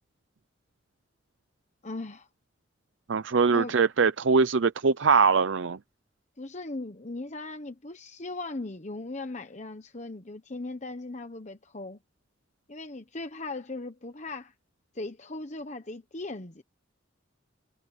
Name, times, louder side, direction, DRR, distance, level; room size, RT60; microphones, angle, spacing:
voice 1, 1.8-2.3 3.5-3.8 6.4-12.0 12.7-14.5 14.9-16.6, left 2 dB, 35° left, 1.1 m, -38 dB
voice 2, 3.1-5.8, right 5 dB, 70° right, 0.6 m, -22 dB
head